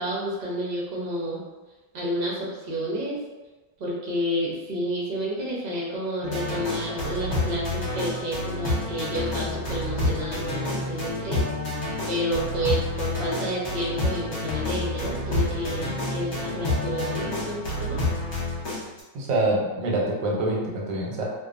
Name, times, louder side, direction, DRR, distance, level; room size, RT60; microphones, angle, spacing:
voice 1, 0.0-1.4 1.9-3.2 3.8-11.4 12.1-18.0, equal, 60° right, -5 dB, 0.6 m, -30 dB
sound 1, 6.2-19.0, left 2 dB, 50° left, 0.9 m, -29 dB
voice 2, 19.1-21.3, right 2 dB, 90° right, -3 dB, 1.3 m, -25 dB
2.8 x 2.2 x 2.4 m, 1.2 s
omnidirectional pair, 1.9 m